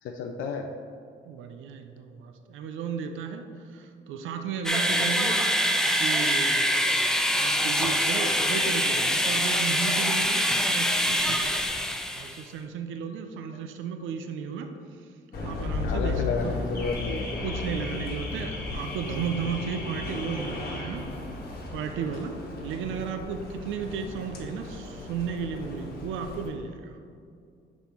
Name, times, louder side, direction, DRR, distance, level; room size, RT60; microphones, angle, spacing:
voice 1, 0.0-0.7 4.9-5.0 15.8-17.3, left 4 dB, 80° left, 3 dB, 0.4 m, -32 dB
voice 2, 1.3-5.6 5.9-11.7 12.1-15.1 15.4-16.6 17.4-21.1 21.7-27.0, right 6 dB, 80° right, 6 dB, 0.5 m, -34 dB
sound 1, 4.6-12.4, equal, 5° left, 0.5 m, -24 dB
Car / Alarm, 15.3-26.5, left 3 dB, 50° left, 1.2 m, -35 dB
5.3 x 4.2 x 4.4 m, 2.3 s
cardioid pair, 90°, 20 cm